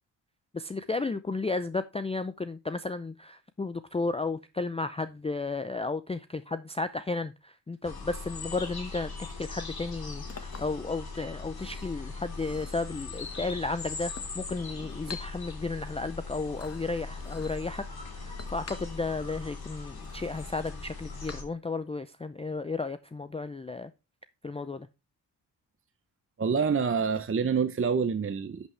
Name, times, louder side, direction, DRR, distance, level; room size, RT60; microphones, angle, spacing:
voice 1, 0.5-17.8 18.1-23.9 24.4-24.9, left 3 dB, 15° left, 0.5 m, -33 dB
sound 1, 7.8-21.4, left 4 dB, 50° left, 2.7 m, -40 dB
Chink clink, 9.8-21.9, left 4 dB, 30° left, 1.4 m, -50 dB
voice 2, 26.4-28.7, right 6 dB, 25° right, 0.8 m, -27 dB
11.0 x 6.1 x 3.3 m
supercardioid pair, 45°, 48 cm